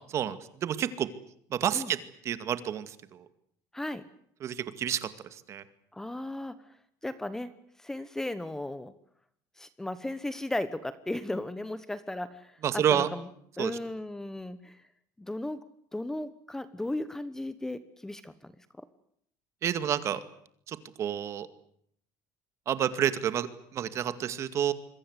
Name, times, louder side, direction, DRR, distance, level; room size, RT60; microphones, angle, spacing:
voice 1, 0.1-1.1 1.5-2.0 2.2-3.2 4.4-5.1 5.5-5.6 12.6-13.1 13.6-13.7 19.6-20.2 20.7-21.5 22.7-24.7, right 9 dB, 40° right, 12 dB, 2.2 m, -29 dB
voice 2, 5.9-6.6 7.0-7.5 7.8-8.9 9.6-13.3 13.6-14.8 15.2-15.6 15.9-18.5 18.8-18.9, left 1 dB, 5° left, 14 dB, 1.1 m, -36 dB
27.0 x 23.0 x 8.2 m, 0.68 s
cardioid pair, 160°, 8 cm